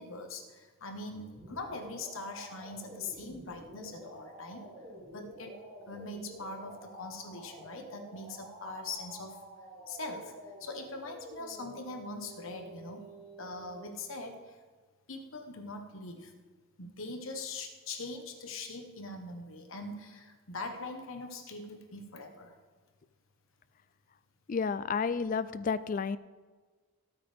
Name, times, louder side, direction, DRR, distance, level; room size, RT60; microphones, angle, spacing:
voice 1, 0.0-4.7 5.1-5.6 5.9-9.4 9.9-10.3 10.6-13.1 13.4-14.6 15.1-16.3 16.8-22.6, left 2 dB, 70° left, 5 dB, 1.3 m, -42 dB
sound 1, 1.1-13.9, right 1 dB, 35° right, 3.2 m, -50 dB
voice 2, 24.5-26.2, left 5 dB, 40° left, 16 dB, 0.3 m, -31 dB
17.5 x 8.8 x 3.5 m, 1.4 s
head